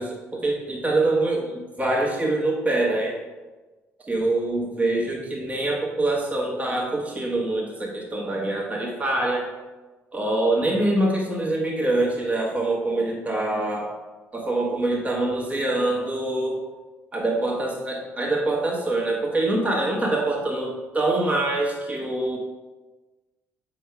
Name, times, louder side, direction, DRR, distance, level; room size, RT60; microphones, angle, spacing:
voice 1, 0.0-3.2 4.0-9.5 10.1-13.9 14.3-16.6 17.1-22.4, right 2 dB, 20° right, -2 dB, 1.3 m, -24 dB
8.4 x 5.4 x 2.3 m, 1.2 s
figure-of-eight pair, 50°, 7 cm